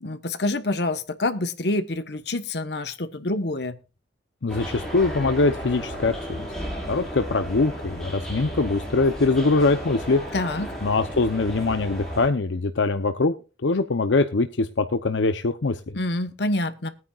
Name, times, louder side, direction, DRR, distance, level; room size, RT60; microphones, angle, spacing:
voice 1, 0.0-3.8 10.3-10.7 15.9-16.9, left 2 dB, 65° left, 1.2 m, -27 dB
voice 2, 4.4-6.5 6.9-10.2 10.8-13.3 13.6-16.0, left 3 dB, 85° left, 0.7 m, -23 dB
sound 1, 4.5-12.3, equal, 5° left, 5.4 m, -34 dB
21.0 x 9.4 x 2.4 m
head